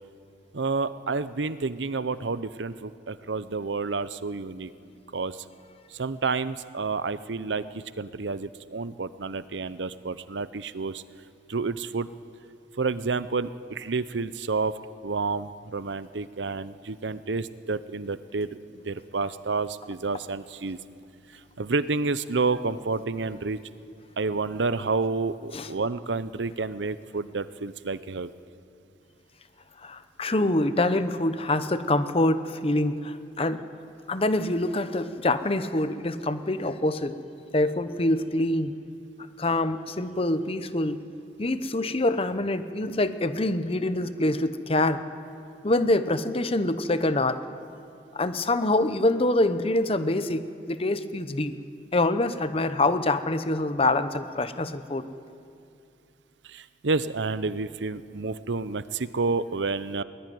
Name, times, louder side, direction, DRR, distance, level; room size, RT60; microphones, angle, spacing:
voice 1, 0.5-4.7 5.1-5.4 5.9-11.0 11.5-12.1 12.8-14.8 15.0-18.5 18.8-20.8 21.6-23.6 24.2-28.3 56.4-60.0, right 4 dB, 90° right, 15 dB, 0.8 m, -29 dB
voice 2, 29.8-33.6 34.1-37.2 37.5-38.7 39.4-41.0 41.4-45.0 45.6-47.4 48.1-51.5 51.9-55.1, left 2 dB, 35° left, 11 dB, 0.9 m, -25 dB
22.0 x 19.0 x 9.4 m, 2.5 s
head